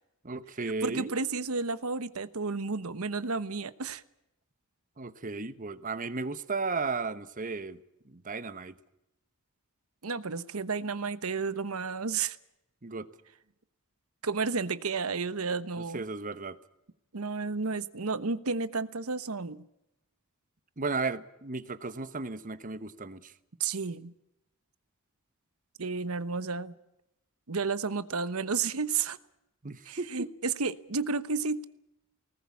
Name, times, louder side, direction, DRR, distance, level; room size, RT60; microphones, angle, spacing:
voice 1, 0.2-1.1 5.0-8.8 12.8-13.1 15.9-16.6 20.8-23.3 29.6-30.3, right 4 dB, 40° right, 13 dB, 1.1 m, -34 dB
voice 2, 0.8-4.0 10.0-12.4 14.2-16.0 17.1-19.6 23.6-24.1 25.8-26.7 27.5-29.2 29.9-31.7, right 4 dB, 85° right, 14 dB, 1.1 m, -32 dB
21.0 x 19.5 x 8.5 m, 0.85 s
head